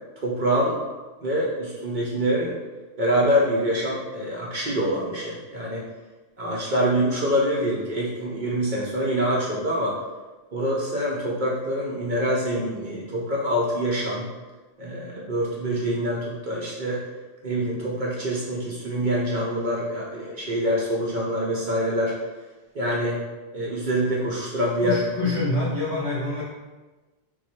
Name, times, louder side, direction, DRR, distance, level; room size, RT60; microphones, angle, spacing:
voice 1, 0.2-0.8 1.2-2.5 3.0-5.8 6.4-10.0 10.5-14.3 14.8-17.0 17.4-22.1 22.7-23.2 23.5-25.0, equal, 50° right, -4 dB, 0.6 m, -25 dB
voice 2, 24.8-26.4, left 2 dB, 50° left, -7 dB, 0.5 m, -26 dB
3.0 x 2.3 x 4.3 m, 1.2 s
omnidirectional pair, 1.3 m